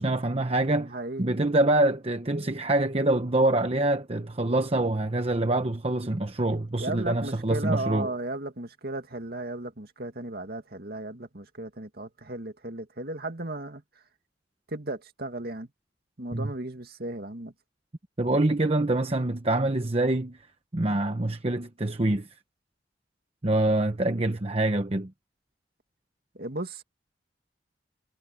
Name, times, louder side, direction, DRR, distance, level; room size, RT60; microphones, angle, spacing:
voice 1, 0.0-0.9 1.2-8.1 16.3-16.5 18.2-20.5 20.7-22.3 23.4-25.1, right 2 dB, 35° right, 1.0 m, -25 dB
voice 2, 0.8-1.4 6.8-13.8 14.7-15.7 16.2-17.5 26.3-26.8, right 2 dB, 60° right, 2.4 m, -35 dB
head